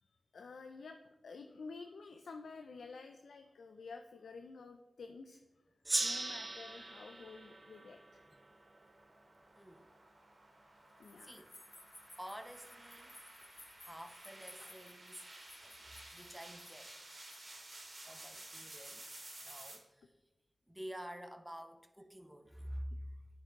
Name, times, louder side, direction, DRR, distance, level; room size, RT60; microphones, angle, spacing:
voice 1, 0.0-5.4 6.0-8.2 11.0-11.5, left 4 dB, 85° left, 6 dB, 0.4 m, -51 dB
Gong, 5.8-9.0, right 2 dB, 35° right, 0.5 m, -39 dB
sound 1, 7.7-19.8, right 2 dB, 60° right, 2.1 m, -54 dB
voice 2, 9.5-9.9 11.2-11.5 12.2-13.2 13.8-15.2 15.6-16.9 18.0-20.1 20.7-22.9, equal, 10° right, 8 dB, 0.8 m, -49 dB
sound 2, 11.0-18.0, left 1 dB, 50° left, 2.0 m, -59 dB
10.0 x 4.7 x 3.5 m, 1.1 s
cardioid pair, 40°, 0 cm